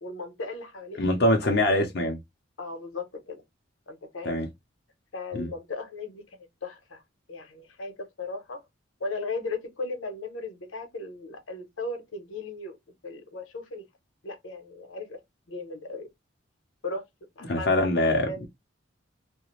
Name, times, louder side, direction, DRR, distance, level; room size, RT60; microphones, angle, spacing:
voice 1, 0.0-1.6 2.6-3.4 3.9-4.4 5.1-7.0 7.3-8.6 9.0-12.8 13.0-13.8 14.2-15.2 15.5-16.1 16.8-17.0 17.4-17.7 18.1-18.5, left 3 dB, 90° left, 0.8 m, -37 dB
voice 2, 1.0-2.2 4.2-4.5 5.3-5.5 17.4-18.3, left 1 dB, 55° left, 0.6 m, -23 dB
2.4 x 2.2 x 3.0 m
head